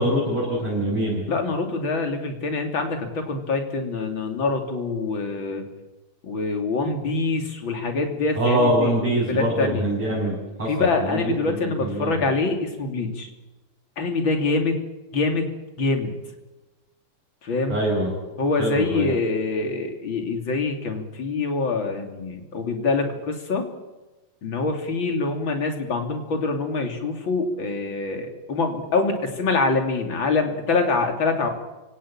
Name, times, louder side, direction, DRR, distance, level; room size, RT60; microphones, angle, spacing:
voice 1, 0.0-1.2 8.4-11.3 11.6-12.2 17.7-18.1 18.6-19.1, right 1 dB, 30° right, -6 dB, 8.4 m, -24 dB
voice 2, 1.3-5.6 6.2-9.8 10.7-13.3 14.0-14.7 15.1-15.5 15.8-16.1 17.4-17.8 18.4-23.6 24.4-31.5, left 3 dB, 30° left, 4 dB, 3.0 m, -25 dB
29.5 x 17.5 x 8.8 m, 1.1 s
omnidirectional pair, 5.3 m